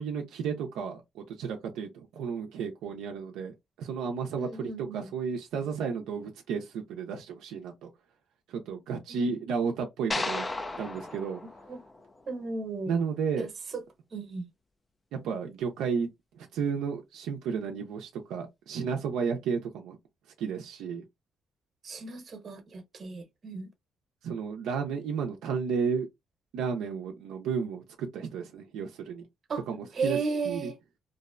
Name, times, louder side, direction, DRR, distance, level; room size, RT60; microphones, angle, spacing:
voice 1, 0.0-7.9 8.5-10.5 10.8-11.4 12.9-13.5 15.1-16.1 16.4-20.0 20.4-21.0 24.2-26.1 26.5-29.2 29.7-30.7, right 6 dB, 90° right, 0.4 m, -33 dB
voice 2, 4.4-5.1 9.1-9.3 11.7-11.8 12.3-12.9 13.4-13.8 14.1-14.5 21.8-23.7 29.5-29.6 29.9-30.8, right 4 dB, 45° right, 0.8 m, -35 dB
sound 1, 10.1-12.5, left 2 dB, 20° left, 0.3 m, -35 dB
2.5 x 2.0 x 2.4 m
cardioid pair, 90°, 0 cm